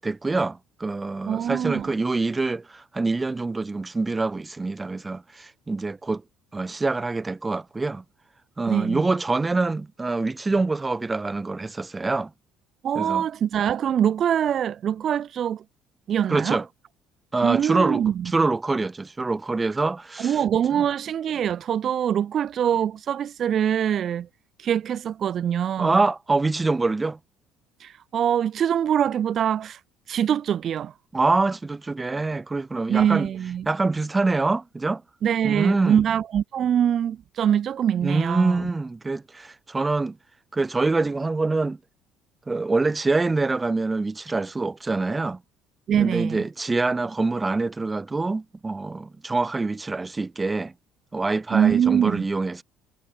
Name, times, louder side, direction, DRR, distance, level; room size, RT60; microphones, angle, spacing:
voice 1, 0.0-6.2 6.5-8.0 8.6-12.3 12.9-13.3 16.3-16.7 17.3-20.4 20.7-20.8 25.8-27.2 31.1-33.3 33.7-35.0 35.4-36.0 38.0-40.2 40.5-41.8 42.5-45.4 46.0-50.7 51.1-52.6, right 3 dB, 15° right, 5.4 m, -25 dB
voice 2, 1.3-1.9 8.7-9.0 12.8-15.6 16.1-16.6 17.4-18.1 20.2-24.3 24.6-26.0 27.8-29.8 30.1-30.9 32.9-33.7 35.2-38.7 45.9-46.4 51.5-52.3, right 9 dB, 40° right, 3.7 m, -23 dB
cardioid pair, 140°, 0 cm